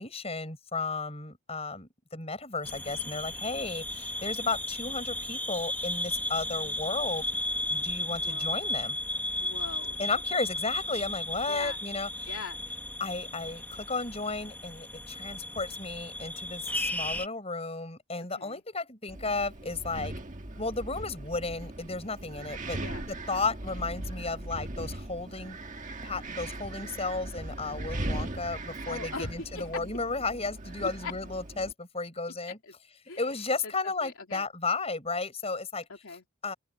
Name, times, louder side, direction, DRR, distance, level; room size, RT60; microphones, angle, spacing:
voice 1, 0.0-7.3 7.7-9.0 10.0-12.1 13.0-20.1 20.6-22.8 23.3-25.6 26.0-32.6 33.2-35.9 36.4-36.5, left 3 dB, 30° left, 7.2 m, -34 dB
sound 1, 2.6-17.3, left 1 dB, 10° left, 1.2 m, -34 dB
voice 2, 8.1-8.6 9.4-10.0 11.5-11.8 12.2-12.6 18.3-18.6 22.8-23.1 28.9-29.7 30.8-31.1 32.5-32.7 33.1-33.3 33.6-34.5 35.9-36.2, left 4 dB, 75° left, 2.9 m, -41 dB
Wind, 19.1-31.7, right 1 dB, 35° right, 1.6 m, -39 dB
open air
head